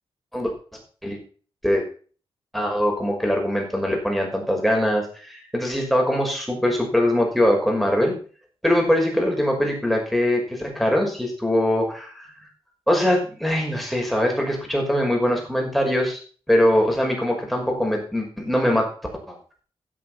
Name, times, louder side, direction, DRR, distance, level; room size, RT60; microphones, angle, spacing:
voice 1, 2.5-8.2 8.6-12.3 12.9-16.2 16.5-18.9 19.3-19.4, left 1 dB, ahead, 1 dB, 5.9 m, -22 dB
13.5 x 7.6 x 5.9 m, 0.41 s
cardioid pair, 85°, 10 cm